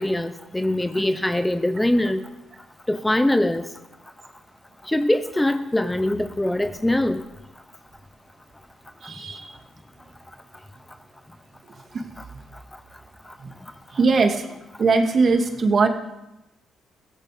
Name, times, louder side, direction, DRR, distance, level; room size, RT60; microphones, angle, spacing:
voice 1, 0.0-2.2 2.9-3.6 4.9-7.2, left 1 dB, 10° left, 10 dB, 0.9 m, -22 dB
voice 2, 9.0-9.4 13.4-13.5 13.9-14.4 14.8-15.9, right 4 dB, 45° right, 4 dB, 2.2 m, -20 dB
16.0 x 16.0 x 5.1 m, 0.95 s
cardioid pair, 90°, 0 cm